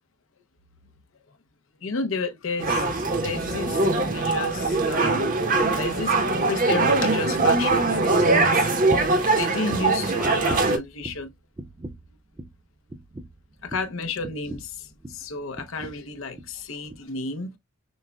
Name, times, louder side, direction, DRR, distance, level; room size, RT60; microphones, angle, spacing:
voice 1, 1.8-2.8 3.2-5.4 5.8-8.7 9.4-11.3 13.6-17.6, left 3 dB, 70° left, 0.7 m, -32 dB
sound 1, 2.6-10.8, right 3 dB, 40° right, 0.8 m, -22 dB
sound 2, 8.9-9.3 9.7-11.3 11.6-12.1 12.4-12.6 12.9-15.3 15.6-16.0 16.3-16.6 16.9-17.0, right 2 dB, 15° right, 0.3 m, -38 dB
6.3 x 2.2 x 2.2 m
head